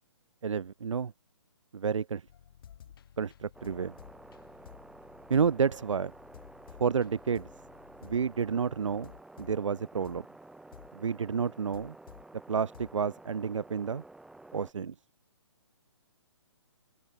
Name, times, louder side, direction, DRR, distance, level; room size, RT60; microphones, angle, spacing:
voice 1, 0.4-1.1 1.7-2.2 3.2-3.9 5.3-6.1 6.8-7.5 8.0-10.2 10.9-11.9 12.5-14.0 14.5-14.9, right 6 dB, 85° right, 0.6 m, -30 dB
sound 1, 2.2-12.3 12.7-13.2, left 9 dB, 50° left, 7.2 m, -54 dB
sound 2, 3.5-14.7, right 2 dB, 5° right, 3.7 m, -52 dB
open air
hypercardioid pair, 150°, 15 cm